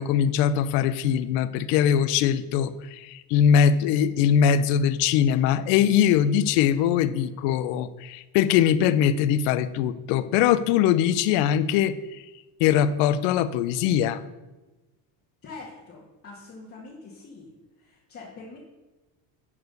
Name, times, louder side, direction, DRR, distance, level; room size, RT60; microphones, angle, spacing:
voice 1, 0.0-11.9 12.6-14.2, left 9 dB, 80° left, 15 dB, 0.7 m, -22 dB
voice 2, 15.4-18.6, left 3 dB, 30° left, -4 dB, 2.0 m, -44 dB
11.0 x 4.8 x 6.5 m, 1.1 s
cardioid pair, 140°, 43 cm